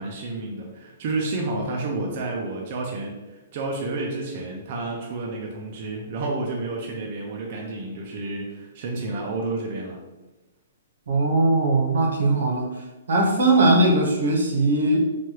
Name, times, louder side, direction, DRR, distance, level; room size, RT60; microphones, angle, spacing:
voice 1, 0.0-10.0, right 2 dB, 35° right, -1 dB, 0.3 m, -30 dB
voice 2, 11.1-12.7 13.1-15.0, right 2 dB, 85° right, 0 dB, 0.8 m, -20 dB
3.2 x 2.3 x 2.8 m, 1.1 s
hypercardioid pair, 175°, 0 cm